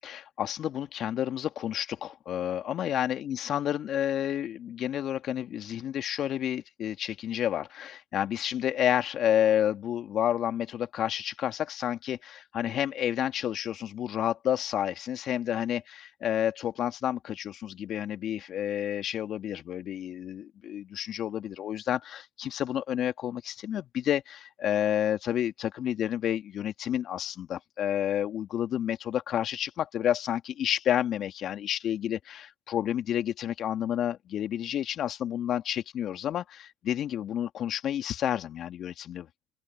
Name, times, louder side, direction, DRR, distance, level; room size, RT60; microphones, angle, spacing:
voice 1, 0.0-39.3, left 10 dB, 50° left, 2.3 m, -30 dB
open air
hypercardioid pair, 80°, 0 cm